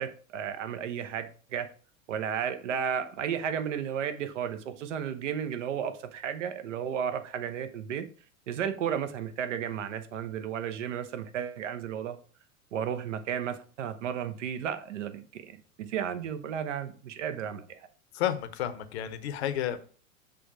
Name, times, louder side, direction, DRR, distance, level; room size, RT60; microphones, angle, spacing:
voice 1, 0.0-1.7 2.1-8.1 8.5-12.2 12.7-17.9, right 8 dB, 60° right, 10 dB, 0.9 m, -33 dB
voice 2, 18.1-19.8, left 11 dB, 50° left, 11 dB, 0.8 m, -31 dB
6.2 x 3.4 x 4.6 m, 0.41 s
figure-of-eight pair, 95°, 42 cm